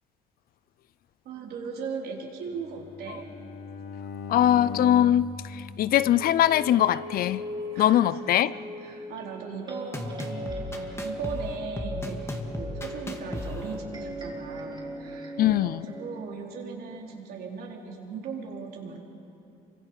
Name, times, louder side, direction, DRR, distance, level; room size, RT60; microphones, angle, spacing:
voice 1, 1.2-3.3 7.7-19.0, right 5 dB, 70° right, -1 dB, 4.0 m, -38 dB
Bowed string instrument, 2.5-6.6, left 6 dB, 80° left, 1.5 m, -40 dB
voice 2, 4.3-7.4 7.8-8.5 15.4-15.9, left 11 dB, 60° left, 18 dB, 0.5 m, -22 dB
sound 1, 5.9-16.2, equal, 25° right, 4.3 m, -39 dB
Time of the season Parte A, 9.9-13.8, left 2 dB, 15° left, 2.0 m, -36 dB
27.5 x 25.0 x 5.7 m, 2.6 s
cardioid pair, 110°, 17 cm